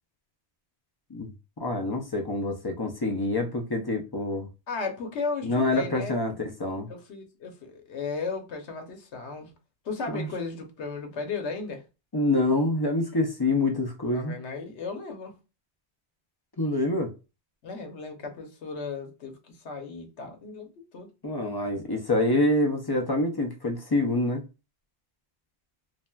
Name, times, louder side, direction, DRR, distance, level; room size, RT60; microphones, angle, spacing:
voice 1, 1.6-4.5 5.4-6.9 10.1-10.3 12.1-14.3 16.6-17.1 21.2-24.4, left 2 dB, 35° left, 0.4 m, -26 dB
voice 2, 4.7-6.3 6.9-9.5 9.8-11.8 14.1-15.3 17.6-21.1, left 4 dB, 90° left, 1.1 m, -35 dB
3.2 x 2.5 x 2.2 m
omnidirectional pair, 1.1 m